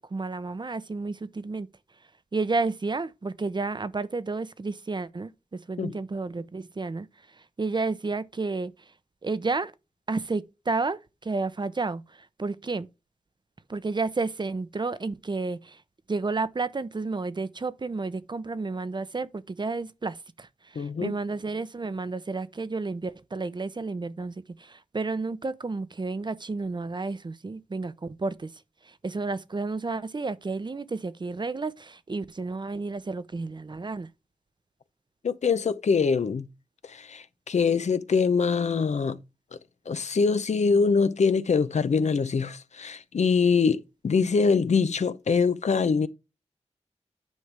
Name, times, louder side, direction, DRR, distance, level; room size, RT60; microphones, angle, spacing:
voice 1, 0.1-1.7 2.3-7.1 7.3-8.7 9.2-9.7 10.1-12.9 13.7-15.8 16.1-34.1, right 3 dB, 40° right, 0.7 m, -31 dB
voice 2, 20.8-21.2 35.2-36.5 36.8-39.2 39.9-46.1, left 5 dB, 75° left, 0.7 m, -24 dB
9.6 x 5.3 x 3.4 m
wide cardioid pair, 70°, 12 cm